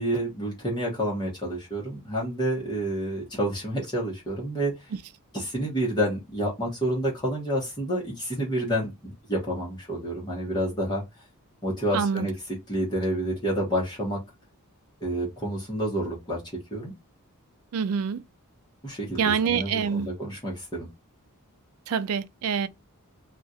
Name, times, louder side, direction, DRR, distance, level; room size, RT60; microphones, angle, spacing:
voice 1, 0.0-4.9 5.3-11.0 11.6-12.3 12.7-14.2 15.0-16.4 16.7-16.9 18.8-20.9, right 1 dB, 20° left, 1.0 m, -29 dB
voice 2, 11.9-12.3 17.7-18.2 19.2-20.1 21.9-22.7, right 6 dB, 70° right, 0.4 m, -26 dB
2.4 x 2.4 x 4.0 m
head